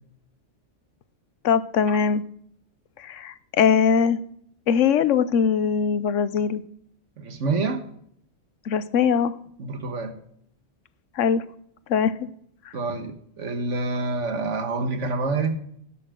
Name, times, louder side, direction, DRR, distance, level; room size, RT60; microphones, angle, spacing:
voice 1, 1.4-2.2 3.0-4.2 4.7-6.6 8.7-9.4 11.2-11.4 11.9-12.1, left 7 dB, 85° left, 15 dB, 1.1 m, -21 dB
voice 2, 7.2-7.9 9.6-10.2 12.7-15.6, right 3 dB, 80° right, 8 dB, 1.8 m, -27 dB
12.0 x 11.0 x 3.7 m, 0.67 s
omnidirectional pair, 1.2 m